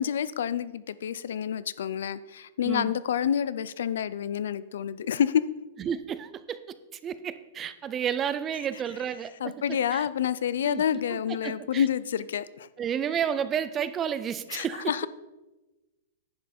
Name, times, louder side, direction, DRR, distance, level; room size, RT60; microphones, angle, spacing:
voice 1, 0.0-5.4 9.4-12.7 14.5-15.1, left 9 dB, 75° left, 17 dB, 0.4 m, -28 dB
voice 2, 5.8-6.8 7.0-10.0 10.6-11.9 12.8-15.1, right 8 dB, 15° right, 13 dB, 0.4 m, -32 dB
10.5 x 5.4 x 5.2 m, 1.1 s
supercardioid pair, 170°, 0 cm